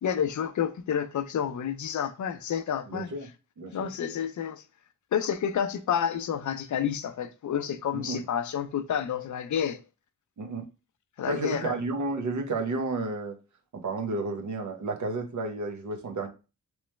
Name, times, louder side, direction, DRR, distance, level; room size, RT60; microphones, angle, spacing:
voice 1, 0.0-3.1 3.7-4.6 5.1-9.8 11.2-11.8, left 8 dB, 65° left, 0.5 m, -29 dB
voice 2, 2.9-3.3 3.6-3.9 7.9-8.2 10.4-10.6 11.3-13.3 13.7-16.3, right 2 dB, 60° right, 0.8 m, -31 dB
3.1 x 3.1 x 3.1 m
wide cardioid pair, 100°, 32 cm